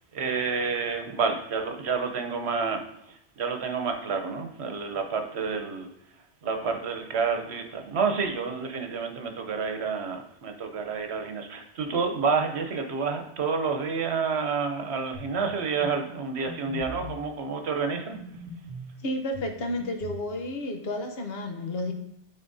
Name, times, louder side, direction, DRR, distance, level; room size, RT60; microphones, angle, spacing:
voice 1, 0.1-5.9 6.4-18.2, right 5 dB, 75° right, 5 dB, 1.1 m, -29 dB
sound 1, 15.1-15.4 15.8-16.0 16.5-17.2 18.1-18.9 19.3-20.3, left 1 dB, ahead, 1.7 m, -40 dB
voice 2, 19.0-21.9, left 1 dB, 65° left, 4 dB, 1.1 m, -31 dB
12.0 x 4.1 x 2.7 m, 0.78 s
omnidirectional pair, 1.1 m